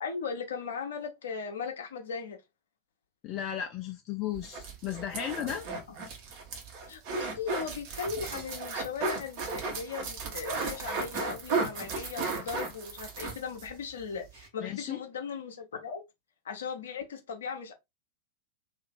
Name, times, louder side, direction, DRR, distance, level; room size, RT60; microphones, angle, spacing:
voice 1, 0.0-2.4 5.4-5.5 6.9-16.0 16.4-17.7, left 5 dB, 65° left, 0.8 m, -38 dB
voice 2, 3.2-5.7 14.6-15.0, left 10 dB, 35° left, 0.5 m, -35 dB
sound 1, 4.3-13.7 14.0-14.1 14.3-14.5, right 4 dB, 45° right, 1.1 m, -35 dB
2.8 x 2.6 x 3.6 m
figure-of-eight pair, 90°, 0 cm